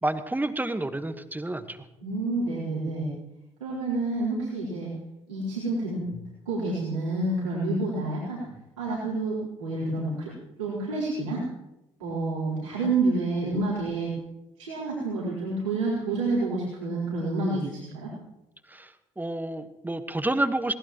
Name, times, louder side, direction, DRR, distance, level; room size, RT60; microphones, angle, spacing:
voice 1, 0.0-1.8 18.7-18.9 19.2-20.7, right 2 dB, 10° right, 10 dB, 1.4 m, -29 dB
voice 2, 2.0-3.1 3.6-4.9 5.3-8.4 8.8-10.3 10.6-11.4 12.0-14.1 14.6-18.1, right 2 dB, 80° right, -9 dB, 4.2 m, -29 dB
21.5 x 18.5 x 3.1 m, 0.91 s
figure-of-eight pair, 45°, 16 cm